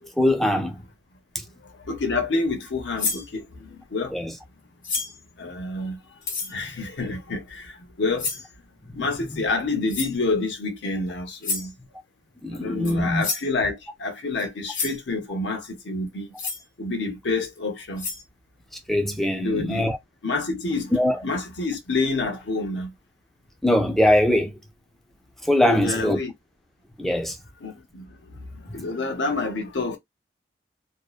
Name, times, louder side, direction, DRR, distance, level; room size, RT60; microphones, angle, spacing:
voice 1, 0.2-0.7 4.1-4.3 8.9-9.0 9.3-9.4 12.4-13.2 18.9-20.0 20.9-21.2 23.6-24.5 25.5-26.2 27.0-27.4, left 1 dB, ahead, 0.4 m, -21 dB
voice 2, 1.7-4.2 5.4-6.2 6.4-8.3 8.9-11.7 12.5-16.3 16.8-18.1 19.4-19.9 20.2-20.9 21.2-22.9 25.7-26.3 27.6-30.0, left 3 dB, 80° left, 0.8 m, -28 dB
sound 1, 3.0-3.3 4.8-5.2 6.2-6.5 8.2-8.5 9.9-10.2 11.4-11.7 12.8-12.9 13.2-13.5 14.4-14.5 14.7-15.0 16.4-16.6 17.6-17.7 18.0-18.2, left 4 dB, 50° left, 0.9 m, -29 dB
2.7 x 2.0 x 2.3 m
head